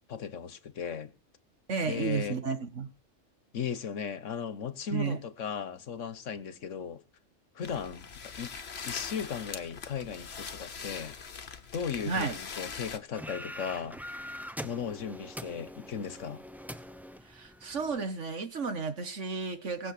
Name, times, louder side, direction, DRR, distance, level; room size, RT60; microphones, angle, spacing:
voice 1, 0.1-1.1 1.9-2.4 3.5-7.0 7.5-8.5 8.8-11.2 11.7-14.0 14.6-16.4, left 7 dB, 80° left, 1.4 m, -36 dB
voice 2, 1.7-2.9 4.9-5.2 12.0-12.3 17.3-19.9, right 5 dB, 70° right, 2.0 m, -32 dB
sound 1, 7.6-13.0, left 6 dB, 60° left, 1.4 m, -42 dB
sound 2, 13.1-18.0, equal, ahead, 0.6 m, -43 dB
19.0 x 7.3 x 6.7 m
omnidirectional pair, 1.3 m